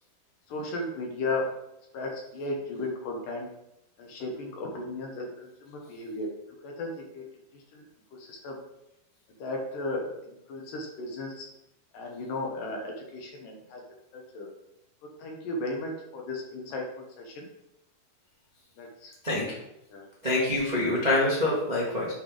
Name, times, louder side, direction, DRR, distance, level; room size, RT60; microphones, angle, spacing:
voice 1, 0.5-1.4 1.9-3.5 4.0-6.3 6.6-6.9 7.1-7.2 7.7-7.8 8.2-8.6 9.4-11.5 11.9-13.8 14.1-14.5 15.2-16.8 17.2-17.5 18.8-19.1 19.9-20.0, left 2 dB, 65° left, 0 dB, 2.6 m, -35 dB
voice 2, 20.2-22.1, left 2 dB, 75° right, -6 dB, 0.4 m, -25 dB
8.0 x 4.5 x 5.0 m, 0.83 s
omnidirectional pair, 4.6 m